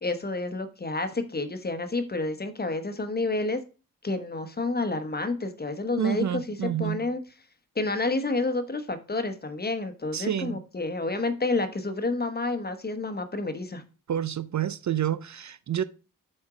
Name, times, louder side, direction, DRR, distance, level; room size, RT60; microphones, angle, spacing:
voice 1, 0.0-3.6 4.0-7.2 7.7-13.8, left 3 dB, 25° left, 1.0 m, -29 dB
voice 2, 6.0-7.0 10.1-10.6 14.1-15.8, right 9 dB, 55° right, 0.5 m, -28 dB
8.7 x 4.4 x 4.8 m
wide cardioid pair, 140°, 35 cm